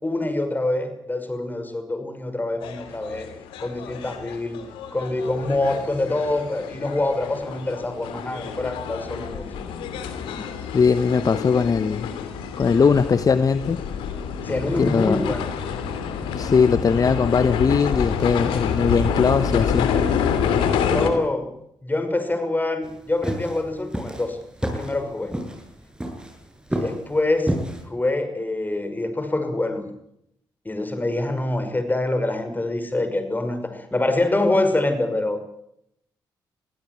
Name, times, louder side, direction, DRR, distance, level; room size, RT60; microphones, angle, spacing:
voice 1, 0.0-3.3 3.6-4.6 4.9-9.6 14.4-15.5 20.8-21.5 21.8-25.3 26.7-27.5 27.9-29.9 30.6-35.6, left 2 dB, 20° left, 9 dB, 5.9 m, -25 dB
sound 1, 2.6-21.1, left 7 dB, 85° left, 2.8 m, -28 dB
voice 2, 10.7-12.1 12.6-13.8 14.8-15.2 16.3-19.9, left 5 dB, 45° left, 14 dB, 1.0 m, -20 dB
sound 2, 22.8-27.8, right 1 dB, 10° right, 7.8 m, -30 dB
22.5 x 16.0 x 9.7 m, 0.76 s
supercardioid pair, 55°, 9 cm